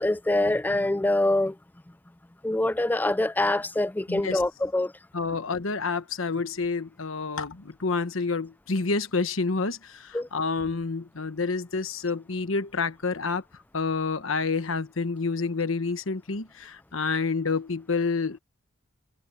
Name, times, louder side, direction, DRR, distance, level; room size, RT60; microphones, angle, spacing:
voice 1, 0.0-1.6 2.4-4.9 10.1-10.3, left 1 dB, 10° left, 0.4 m, -24 dB
voice 2, 4.1-4.4 5.1-13.4 13.7-18.4, left 4 dB, 90° left, 1.2 m, -28 dB
head